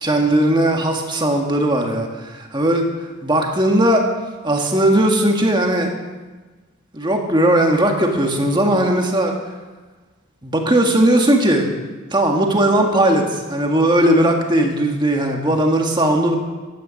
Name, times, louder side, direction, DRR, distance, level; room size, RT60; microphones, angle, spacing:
voice 1, 0.0-2.9 3.2-4.1 4.4-5.9 6.9-9.4 10.4-11.7 12.1-16.4, right 1 dB, 20° right, 2 dB, 1.7 m, -17 dB
15.0 x 10.5 x 6.4 m, 1.3 s
head